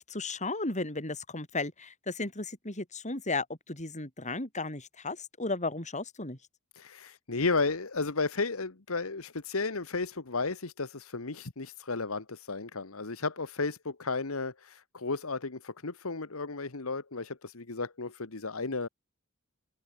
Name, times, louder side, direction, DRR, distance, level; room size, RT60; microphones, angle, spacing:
voice 1, 0.0-6.4, left 3 dB, 35° left, 5.6 m, -35 dB
voice 2, 6.8-18.9, left 3 dB, 80° left, 1.5 m, -33 dB
head